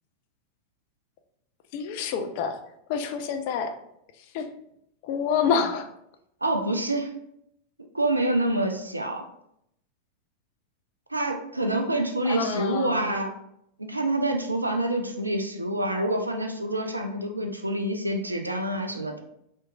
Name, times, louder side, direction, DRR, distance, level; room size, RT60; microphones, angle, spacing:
voice 1, 1.7-2.6 2.9-3.7 4.3-4.5 5.0-5.9 12.3-13.2, left 6 dB, 45° left, 6 dB, 0.3 m, -27 dB
voice 2, 6.4-7.2 7.9-9.3 11.1-13.3 13.8-19.2, right 1 dB, 85° right, 4 dB, 0.3 m, -27 dB
2.8 x 2.5 x 2.3 m, 0.76 s
figure-of-eight pair, 90°, 0 cm